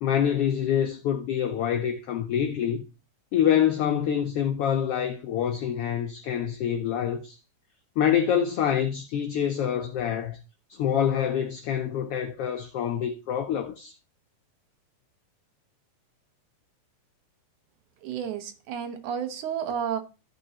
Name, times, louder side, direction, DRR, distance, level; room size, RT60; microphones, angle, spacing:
voice 1, 0.0-2.8 3.3-7.4 8.0-10.4 10.7-13.9, left 9 dB, 80° left, 1.3 m, -26 dB
voice 2, 18.0-20.0, right 8 dB, 80° right, 2.4 m, -31 dB
13.5 x 5.3 x 2.8 m
omnidirectional pair, 3.5 m